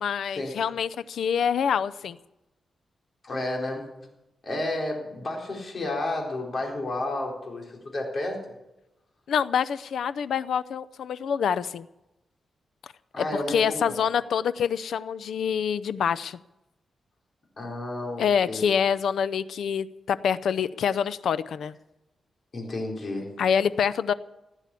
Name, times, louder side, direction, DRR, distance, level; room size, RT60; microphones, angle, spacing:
voice 1, 0.0-2.2 9.3-11.9 13.2-16.4 18.2-21.8 23.4-24.1, left 7 dB, 85° left, 15 dB, 0.6 m, -26 dB
voice 2, 3.2-3.9 4.4-8.4 13.1-13.9 17.6-18.7 22.5-23.3, left 2 dB, 40° left, 0 dB, 4.2 m, -31 dB
16.0 x 9.9 x 8.4 m, 0.96 s
wide cardioid pair, 150°, 0 cm